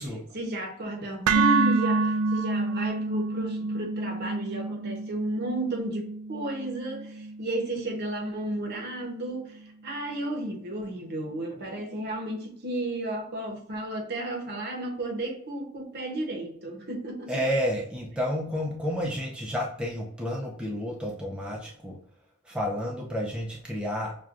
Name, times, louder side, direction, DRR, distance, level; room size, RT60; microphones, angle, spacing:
voice 1, 0.3-17.3, right 1 dB, 50° right, 0.8 m, -33 dB
sound 1, 1.3-9.4, right 3 dB, 85° right, 0.3 m, -28 dB
voice 2, 17.3-22.0 22.5-24.1, equal, 5° right, 0.4 m, -30 dB
5.9 x 2.2 x 2.4 m
head